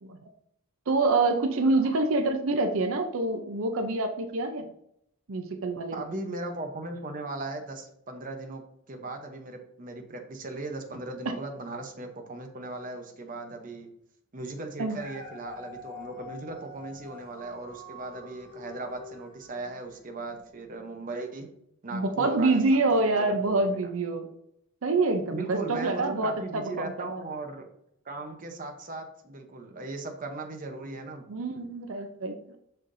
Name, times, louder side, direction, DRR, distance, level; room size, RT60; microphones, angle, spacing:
voice 1, 0.9-4.7 5.3-6.0 14.8-15.0 21.9-24.3 24.8-26.9 31.3-32.6, right 3 dB, 75° right, 6 dB, 0.6 m, -26 dB
voice 2, 5.9-13.9 14.3-21.5 21.8-23.9 25.3-27.7 28.0-31.2, right 2 dB, 40° right, 4 dB, 0.8 m, -38 dB
Dog, 14.7-20.0 20.6-20.7, left 2 dB, 15° left, 2.4 m, -46 dB
6.5 x 5.8 x 2.6 m, 0.75 s
head